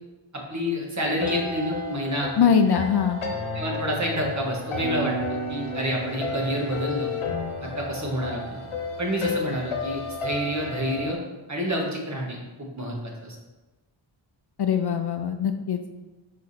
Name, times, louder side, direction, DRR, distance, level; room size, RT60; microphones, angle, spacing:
voice 1, 0.3-2.3 3.5-7.1 7.6-8.6 9.0-11.2 11.5-13.3, equal, 35° right, -2 dB, 1.5 m, -28 dB
sound 1, 1.0-11.1, left 2 dB, 85° left, 0.9 m, -32 dB
voice 2, 2.4-3.2 14.6-15.8, left 7 dB, 55° left, 7 dB, 0.5 m, -22 dB
5.1 x 4.7 x 4.2 m, 1.1 s
wide cardioid pair, 75°, 48 cm